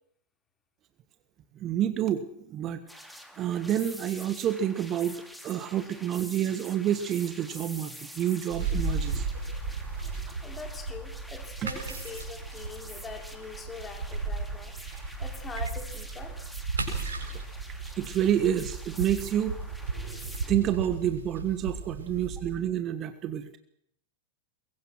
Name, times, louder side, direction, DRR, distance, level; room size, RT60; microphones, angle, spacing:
voice 1, 1.6-3.0 3.4-9.3 10.3-10.4 18.0-19.6 20.5-23.5, right 10 dB, 30° right, 11 dB, 1.5 m, -28 dB
sound 1, 2.9-20.5, equal, ahead, 2.8 m, -47 dB
sound 2, 8.5-22.6, right 4 dB, 70° right, 7.4 m, -35 dB
voice 2, 10.3-14.7 15.2-16.3, left 4 dB, 20° left, 3 dB, 4.4 m, -43 dB
23.0 x 22.5 x 6.3 m, 0.70 s
figure-of-eight pair, 90°, 0 cm